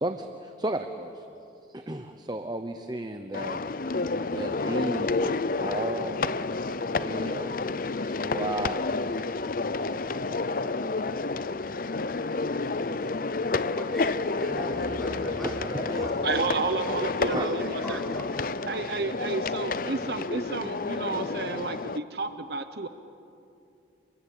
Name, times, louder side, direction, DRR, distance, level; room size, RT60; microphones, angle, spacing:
voice 1, 0.0-1.3 1.7-3.6 4.2-6.2 6.9-7.6 8.0-9.3 9.9-10.0 10.3-10.4 12.7-12.8 14.4-16.1 17.3-17.5, right 1 dB, 20° right, 7 dB, 0.9 m, -34 dB
sound 1, 3.3-22.0, left 3 dB, 45° left, 0.6 m, -30 dB
voice 2, 13.7-16.2 17.3-19.0, equal, ahead, -1 dB, 3.9 m, -40 dB
voice 3, 16.2-18.0 18.7-22.9, right 3 dB, 55° right, 10 dB, 0.9 m, -31 dB
29.0 x 23.5 x 8.6 m, 2.6 s
head